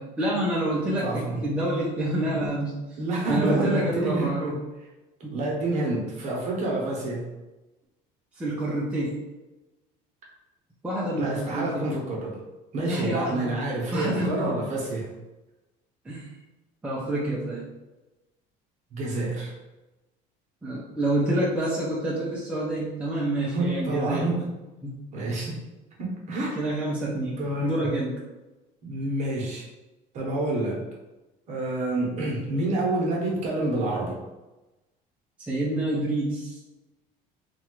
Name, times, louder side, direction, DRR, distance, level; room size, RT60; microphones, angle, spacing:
voice 1, 0.0-2.8 3.3-4.6 5.2-5.4 8.4-9.2 10.8-11.9 12.9-13.5 13.9-14.5 16.1-16.3 16.8-17.7 20.6-24.3 24.8-25.0 26.6-28.1 35.5-36.6, right 1 dB, 5° right, -6 dB, 0.5 m, -27 dB
voice 2, 1.0-1.4 2.2-2.5 3.0-4.6 5.3-7.3 11.1-12.4 12.7-15.1 18.9-19.5 23.5-24.5 25.1-25.6 26.0-26.6 27.4-27.9 28.8-29.7 30.1-30.8 31.5-34.2, right 2 dB, 45° right, -3 dB, 0.9 m, -28 dB
2.9 x 2.3 x 3.0 m, 1.1 s
cardioid pair, 150°, 17 cm